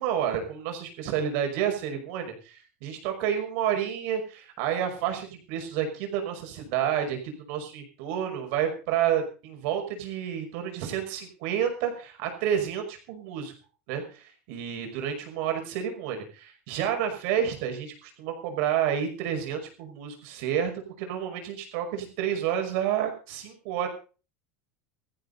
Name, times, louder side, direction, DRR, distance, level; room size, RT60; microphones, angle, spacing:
voice 1, 0.0-13.5 13.9-20.7 21.0-23.9, right 9 dB, 65° right, 4 dB, 5.7 m, -30 dB
18.0 x 14.5 x 4.0 m, 0.36 s
supercardioid pair, 125°, 7 cm